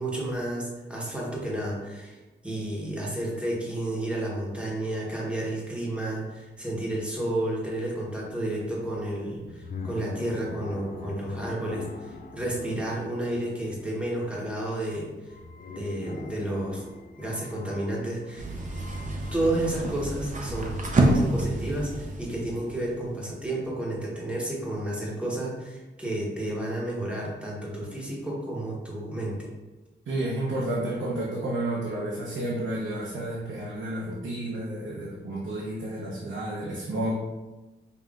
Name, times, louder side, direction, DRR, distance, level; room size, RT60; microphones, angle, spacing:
voice 1, 0.0-15.3 15.7-16.8 17.2-18.5 19.3-29.5, right 1 dB, 5° right, -4 dB, 1.0 m, -31 dB
sound 1, 6.6-6.7 6.9-19.6, left 3 dB, 45° left, 0.4 m, -44 dB
sound 2, 18.4-23.5, right 2 dB, 40° right, 0.6 m, -28 dB
voice 2, 30.1-37.1, right 1 dB, 70° right, -5 dB, 0.8 m, -31 dB
5.4 x 2.9 x 2.4 m, 1.1 s
wide cardioid pair, 135°, 20 cm